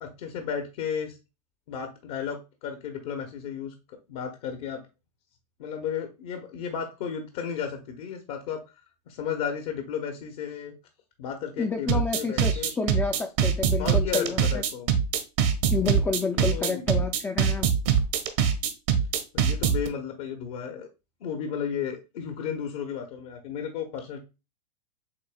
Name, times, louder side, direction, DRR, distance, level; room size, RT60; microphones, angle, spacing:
voice 1, 0.0-1.2 1.7-4.8 5.6-8.6 9.1-10.7 11.2-12.7 13.8-14.9 15.8-16.9 19.3-20.9 21.2-24.2, left 7 dB, 60° left, 5 dB, 1.0 m, -34 dB
voice 2, 11.6-14.6 15.7-17.7, left 4 dB, 10° left, 4 dB, 0.4 m, -29 dB
sound 1, 11.9-19.9, right 8 dB, 55° right, 0.9 m, -23 dB
7.2 x 2.7 x 2.3 m, 0.27 s
hypercardioid pair, 110°, 21 cm